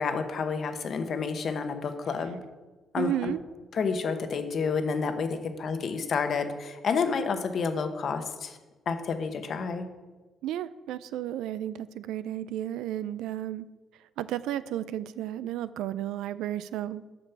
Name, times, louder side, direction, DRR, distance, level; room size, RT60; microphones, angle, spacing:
voice 1, 0.0-2.4 2.9-3.3 3.7-8.6 8.9-9.9, left 5 dB, 55° left, 7 dB, 1.0 m, -29 dB
voice 2, 3.0-3.4 10.4-13.6 14.2-17.1, right 12 dB, 90° right, 16 dB, 0.4 m, -33 dB
8.0 x 5.2 x 6.9 m, 1.2 s
cardioid pair, 90°, 0 cm